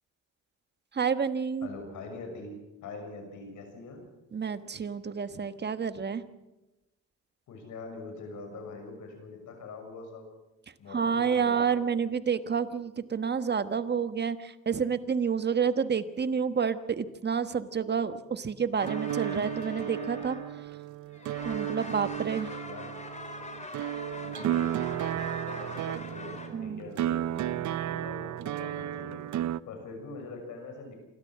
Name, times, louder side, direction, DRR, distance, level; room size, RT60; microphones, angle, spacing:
voice 1, 1.0-1.7 4.3-6.2 10.9-20.4 21.4-22.5 26.5-26.8, right 6 dB, 35° right, 11 dB, 1.3 m, -29 dB
voice 2, 1.6-4.0 7.5-10.3 10.8-11.7 22.6-23.0 24.1-29.2 29.6-31.0, left 3 dB, 75° left, 4 dB, 6.4 m, -43 dB
sound 1, 18.7-20.9 21.1-26.5, left 2 dB, 25° left, 3.6 m, -43 dB
sound 2, 18.8-29.6, right 12 dB, 70° right, 0.6 m, -33 dB
28.0 x 13.0 x 7.4 m, 1.0 s
cardioid pair, 90°, 30 cm